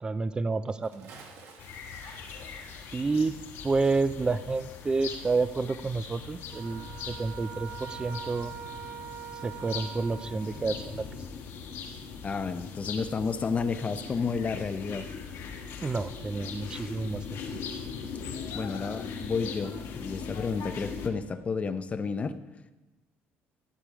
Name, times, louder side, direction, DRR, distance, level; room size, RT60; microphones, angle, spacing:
voice 1, 0.0-1.1 2.9-3.4 3.6-8.5 9.4-11.2 15.8-17.6, right 3 dB, 20° right, 14 dB, 0.4 m, -30 dB
Bathtub (filling or washing) / Splash splatter, 0.7-5.7 5.9-6.0, right 4 dB, 70° right, 1.8 m, -53 dB
sound 1, 1.6-21.1, left 6 dB, 70° left, 1.6 m, -40 dB
sound 2, 6.5-10.9, right 9 dB, 40° right, 1.0 m, -43 dB
voice 2, 12.2-15.1 18.5-22.4, left 5 dB, 30° left, 11 dB, 0.6 m, -31 dB
13.0 x 6.8 x 4.9 m, 1.1 s
cardioid pair, 120°, 5 cm